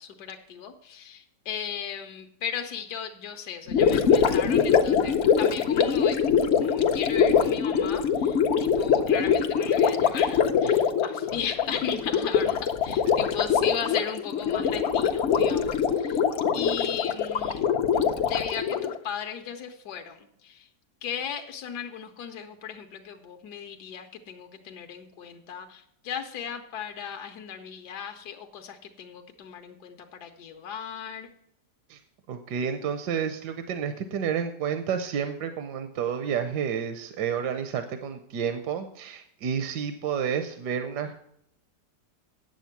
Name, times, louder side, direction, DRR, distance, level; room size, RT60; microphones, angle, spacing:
voice 1, 0.0-6.3 6.6-16.2 16.5-17.6 17.9-20.7 21.0-31.3, left 8 dB, 75° left, 5 dB, 1.4 m, -36 dB
Gurgling, 3.7-19.0, left 7 dB, 55° left, 0.8 m, -23 dB
voice 2, 32.3-41.1, right 7 dB, 80° right, 8 dB, 1.3 m, -30 dB
9.2 x 7.4 x 5.8 m, 0.71 s
omnidirectional pair, 1.8 m